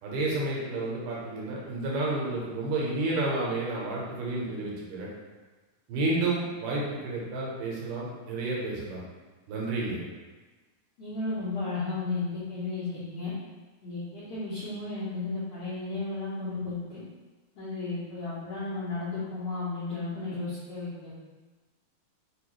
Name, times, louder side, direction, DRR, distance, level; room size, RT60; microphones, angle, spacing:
voice 1, 0.0-5.1 5.9-9.0 9.5-10.0, right 2 dB, 80° right, -4 dB, 2.3 m, -30 dB
voice 2, 11.0-13.3 13.8-17.0 17.5-21.1, left 3 dB, 70° left, -11 dB, 1.6 m, -34 dB
5.1 x 2.4 x 3.0 m, 1.3 s
omnidirectional pair, 3.8 m